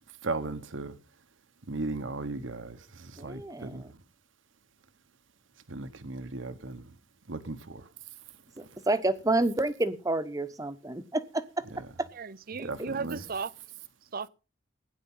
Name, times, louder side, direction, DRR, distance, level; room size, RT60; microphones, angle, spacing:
voice 1, 0.2-1.0 1.7-4.0 5.7-6.9 7.3-7.9 12.6-13.2, right 3 dB, 70° right, 1.2 m, -36 dB
voice 2, 3.2-3.9 8.6-11.6 12.0-12.1 12.6-12.9, right 2 dB, 20° right, 1.0 m, -29 dB
voice 3, 12.1-13.5 14.1-14.3, right 5 dB, 45° right, 0.6 m, -35 dB
16.5 x 9.8 x 5.6 m
head